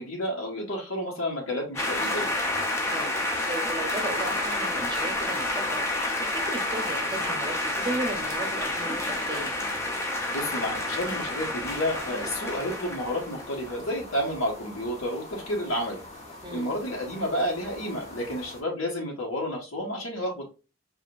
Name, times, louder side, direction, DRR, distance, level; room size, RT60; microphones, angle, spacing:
voice 1, 0.0-2.3 10.3-16.0 16.5-20.5, equal, 75° left, -2 dB, 1.2 m, -30 dB
sound 1, 1.8-13.8, left 1 dB, 10° left, 0.5 m, -29 dB
voice 2, 2.8-3.1 3.4-5.8 6.2-9.5 16.4-16.7, right 2 dB, 20° right, 3 dB, 0.7 m, -35 dB
sound 2, 11.7-18.6, left 1 dB, 30° left, 1.0 m, -44 dB
4.9 x 2.5 x 2.5 m, 0.31 s
head